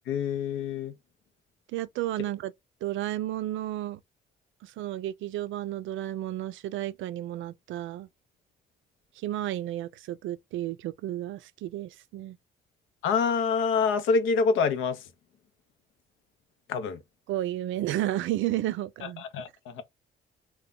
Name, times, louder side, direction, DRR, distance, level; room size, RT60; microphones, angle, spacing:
voice 1, 0.1-1.0 13.0-15.1 16.7-17.0 19.0-19.8, left 5 dB, 85° left, 0.6 m, -26 dB
voice 2, 1.7-2.5 2.8-4.0 4.6-8.1 9.2-12.4 17.3-19.2, right 14 dB, 75° right, 0.4 m, -32 dB
2.2 x 2.2 x 3.6 m
cardioid pair, 90°, 20 cm